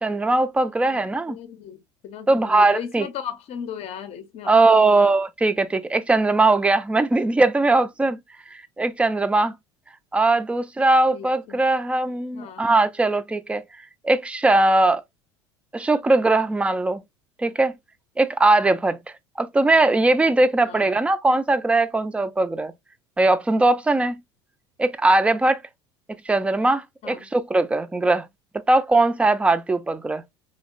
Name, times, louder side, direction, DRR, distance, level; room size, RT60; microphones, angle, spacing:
voice 1, 0.0-1.4 2.3-3.1 4.5-8.2 8.5-9.6 10.1-13.6 14.0-15.0 15.7-17.0 17.4-17.7 18.2-19.0 19.4-22.7 23.2-24.2 24.8-25.6 26.3-28.3 28.7-30.2, right 2 dB, 10° right, 0.3 m, -20 dB
voice 2, 0.8-5.1 11.1-11.6 12.3-12.7 20.6-21.0 27.0-27.3, left 8 dB, 45° left, 0.6 m, -37 dB
2.8 x 2.0 x 2.4 m
hypercardioid pair, 80°, 15 cm